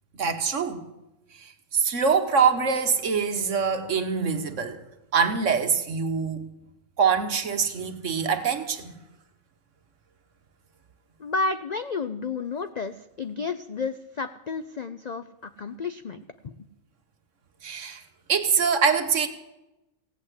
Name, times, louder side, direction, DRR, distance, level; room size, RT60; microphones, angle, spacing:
voice 1, 0.2-0.8 1.4-4.8 5.1-6.4 7.0-8.9 17.6-18.0 18.3-19.3, right 6 dB, 60° right, 1.5 m, -24 dB
voice 2, 11.2-16.2 16.4-16.5, left 4 dB, 80° left, 0.3 m, -31 dB
16.5 x 8.5 x 8.2 m
omnidirectional pair, 1.5 m